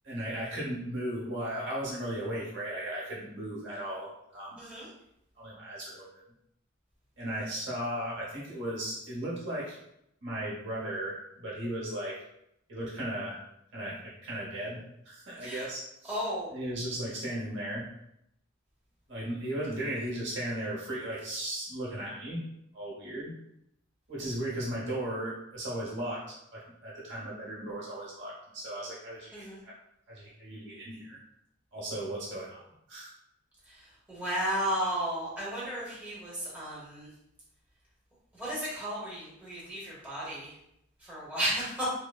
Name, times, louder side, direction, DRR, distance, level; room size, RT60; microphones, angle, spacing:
voice 1, 0.0-4.6 5.4-6.2 7.2-9.8 10.2-12.2 12.7-13.4 13.7-16.2 16.5-17.8 19.1-22.4 22.7-23.3 24.1-29.7 30.1-31.2 31.7-33.1, right 1 dB, 65° right, -7 dB, 1.0 m, -36 dB
voice 2, 4.6-4.9 15.4-15.7 16.1-16.5 29.3-29.6 33.7-37.1 38.3-40.5 41.0-41.9, equal, 10° right, -8 dB, 1.0 m, -34 dB
3.3 x 2.0 x 2.3 m, 0.77 s
head